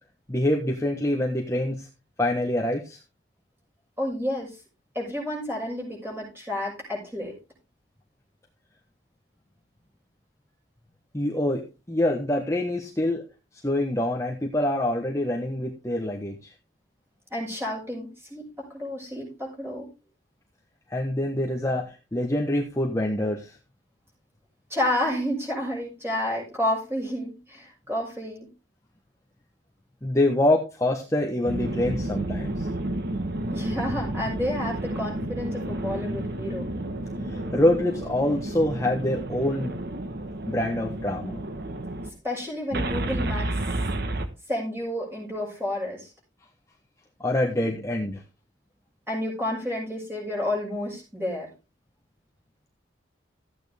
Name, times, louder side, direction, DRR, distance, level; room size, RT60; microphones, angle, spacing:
voice 1, 0.3-1.9 2.2-3.0 11.1-11.6 11.9-13.2 13.6-16.5 20.9-23.6 30.0-32.7 37.3-39.8 40.5-41.4 47.2-48.2, left 1 dB, 15° left, 0 dB, 1.3 m, -25 dB
voice 2, 4.0-4.6 4.9-7.3 17.3-19.9 24.7-28.5 33.5-36.7 42.2-43.6 44.5-46.1 47.5-47.8 49.1-51.5, left 1 dB, 15° right, -2 dB, 6.5 m, -30 dB
sound 1, 31.4-42.1 42.7-44.3, right 1 dB, 55° right, 1.3 m, -31 dB
14.0 x 8.9 x 3.5 m, 0.29 s
head